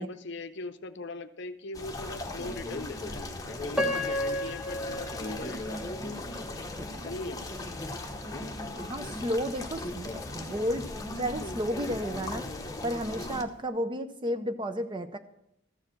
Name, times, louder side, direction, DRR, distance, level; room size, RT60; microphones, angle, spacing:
voice 1, 0.0-5.8 6.9-7.4 13.2-13.4, left 3 dB, 55° left, 10 dB, 0.7 m, -40 dB
sound 1, 1.7-13.4, left 2 dB, 15° left, 0.9 m, -37 dB
Piano, 3.7-6.8 7.3-7.4 8.1-8.3, left 1 dB, 5° right, 1.0 m, -33 dB
voice 2, 8.7-10.9 11.2-12.5 12.8-15.2, equal, 25° right, 9 dB, 0.6 m, -32 dB
14.0 x 4.8 x 7.5 m, 0.79 s
head